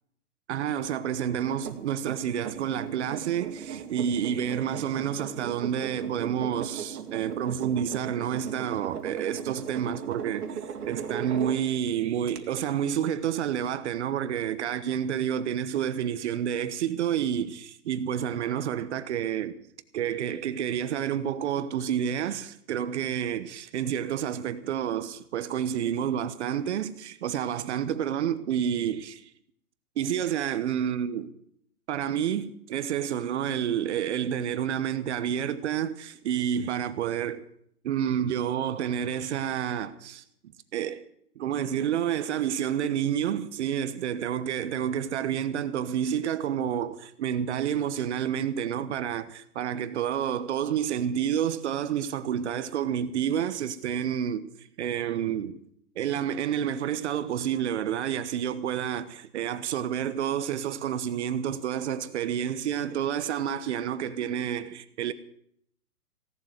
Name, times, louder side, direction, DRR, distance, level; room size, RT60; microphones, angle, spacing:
voice 1, 0.5-19.6 19.9-29.3 30.0-31.3 31.9-37.4 37.8-40.2 40.7-41.0 41.4-55.6 56.0-65.1, right 9 dB, 45° right, 1.1 m, -29 dB
sound 1, 1.4-11.9 12.3-12.4, right 7 dB, 70° right, 2.4 m, -38 dB
17.0 x 7.7 x 9.2 m
hypercardioid pair, 145°, 47 cm